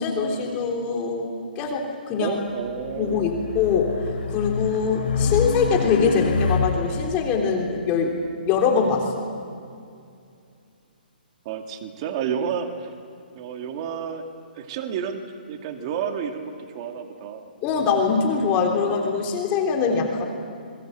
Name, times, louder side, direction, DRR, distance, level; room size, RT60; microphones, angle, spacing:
voice 1, 0.0-2.4 2.9-8.1 8.5-9.3 17.6-20.2, left 5 dB, 25° left, 1 dB, 3.5 m, -23 dB
voice 2, 2.2-3.5 11.4-12.9 13.3-14.3 14.5-17.5, right 7 dB, 35° right, 5 dB, 2.3 m, -31 dB
Race car auto racing, 2.8-7.2, left 5 dB, 80° left, 3.4 m, -26 dB
29.0 x 22.5 x 8.0 m, 2.4 s
hypercardioid pair, 155°, 5 cm